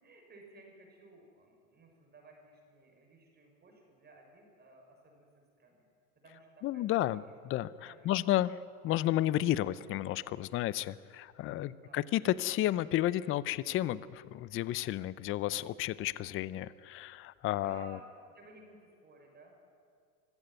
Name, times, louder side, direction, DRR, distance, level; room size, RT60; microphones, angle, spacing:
voice 1, 0.0-5.9 6.2-7.1 7.8-8.3 11.6-12.0 17.6-18.1 18.3-19.5, right 2 dB, 25° right, 1 dB, 6.3 m, -56 dB
voice 2, 6.6-8.6 8.8-18.0, left 14 dB, 30° left, 18 dB, 0.6 m, -32 dB
24.0 x 15.5 x 9.2 m, 2.3 s
hypercardioid pair, 110°, 42 cm